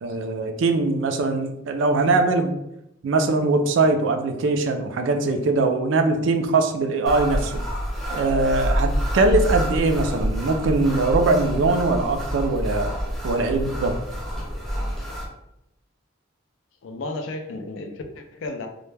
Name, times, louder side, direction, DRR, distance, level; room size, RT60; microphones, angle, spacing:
voice 1, 0.0-2.5 3.0-7.5 8.1-13.0 13.2-14.0, right 3 dB, 70° right, 7 dB, 0.3 m, -21 dB
sound 1, 7.1-15.3, equal, ahead, 0.4 m, -27 dB
voice 2, 16.8-18.7, left 2 dB, 75° left, 5 dB, 0.4 m, -33 dB
2.1 x 2.1 x 3.2 m, 0.85 s
head